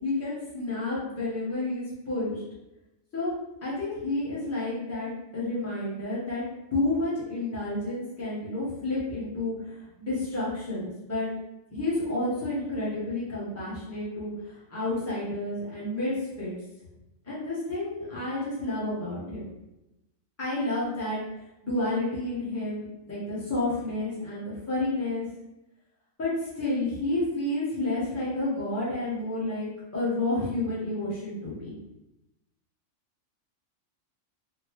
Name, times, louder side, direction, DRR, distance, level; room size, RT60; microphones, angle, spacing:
voice 1, 0.0-2.4 3.1-3.3 3.6-6.4 6.7-11.3 11.7-16.5 17.3-19.4 20.4-21.2 21.6-25.2 26.2-31.7, left 2 dB, 10° left, -9 dB, 1.0 m, -30 dB
3.6 x 2.2 x 2.9 m, 0.96 s
omnidirectional pair, 1.4 m